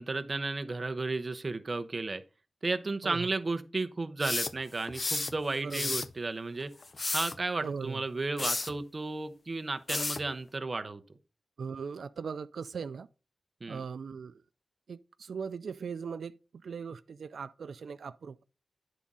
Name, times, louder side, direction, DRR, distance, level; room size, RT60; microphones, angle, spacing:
voice 1, 0.0-2.2 2.6-6.7 7.1-11.0 13.6-13.8, right 3 dB, 35° right, 0.6 m, -33 dB
sound 1, 4.2-5.3 5.7-6.1 6.8-7.4 8.4-8.7 9.9-10.3, left 3 dB, 35° left, 0.4 m, -32 dB
voice 2, 5.6-6.0 7.6-8.0 11.6-13.1 13.7-14.4 14.9-16.4 16.6-18.4, right 6 dB, 90° right, 0.3 m, -39 dB
9.9 x 3.6 x 5.4 m
wide cardioid pair, 150°, 0 cm